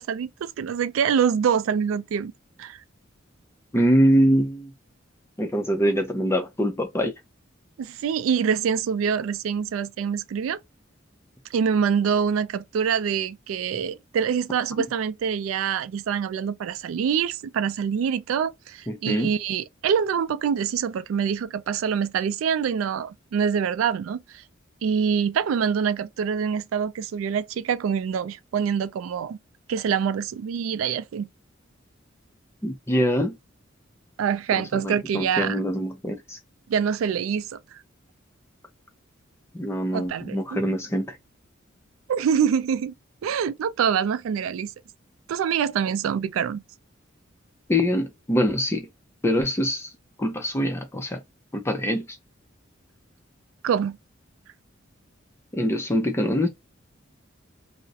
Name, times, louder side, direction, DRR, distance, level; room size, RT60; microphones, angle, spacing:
voice 1, 0.0-2.3 2.6-2.8 7.8-10.6 11.5-24.2 24.8-29.4 29.7-31.3 34.2-35.6 36.7-37.8 39.9-40.6 42.1-42.9 43.2-44.7 45.3-46.6 53.6-54.0, right 7 dB, 85° right, 0.3 m, -25 dB
voice 2, 3.7-4.7 5.4-7.1 18.9-19.3 32.6-33.4 34.5-36.4 39.5-41.2 47.7-48.9 49.2-49.9 50.2-51.2 51.5-52.2 55.5-56.5, equal, 15° left, 0.5 m, -24 dB
2.4 x 2.0 x 2.7 m
head